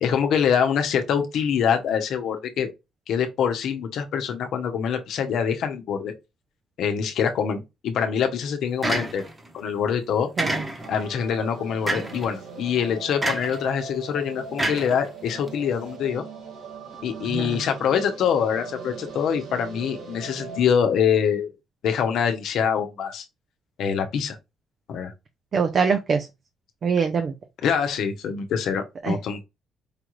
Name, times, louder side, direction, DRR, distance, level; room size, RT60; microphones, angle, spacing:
voice 1, 0.0-2.7 3.1-6.1 6.8-9.3 9.5-10.3 10.9-16.2 17.0-21.5 21.8-23.2 23.8-24.4 24.9-25.1 27.6-29.4, left 7 dB, 75° left, 0.8 m, -24 dB
sound 1, 8.8-9.5 10.4-11.0 11.9-12.3 13.2-13.6 14.6-15.5, right 1 dB, 20° right, 1.1 m, -27 dB
sound 2, 10.8-20.7, right 4 dB, 90° right, 2.0 m, -40 dB
voice 2, 17.3-17.6 25.5-26.3 26.8-27.3 29.0-29.1, right 5 dB, 50° right, 0.5 m, -23 dB
5.0 x 2.4 x 3.0 m
cardioid pair, 90°, 0 cm